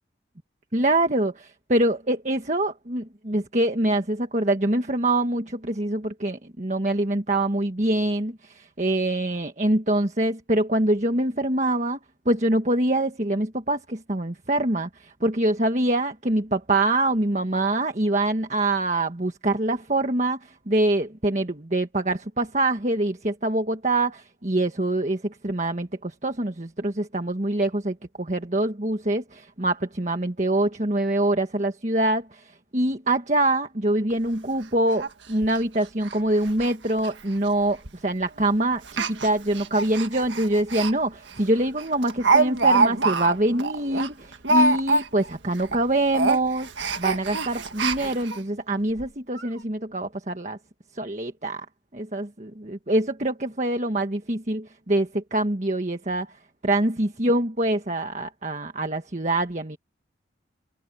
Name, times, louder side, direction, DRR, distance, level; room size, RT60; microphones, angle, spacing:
voice 1, 0.7-12.0 12.2-46.7 47.0-50.6 50.9-51.6 51.9-56.3 56.6-59.8, right 1 dB, 40° right, 1.5 m, -25 dB
Speech, 34.1-34.2 34.5-34.6 35.0-35.1 35.4-35.6 36.0-36.2 36.4-36.7 37.0-37.1 37.9-38.1 38.8-40.9 41.3-41.4 41.8-45.3 45.6-45.8 46.1-48.4 49.0-49.1 49.4-49.5, right 3 dB, 90° right, 1.7 m, -24 dB
head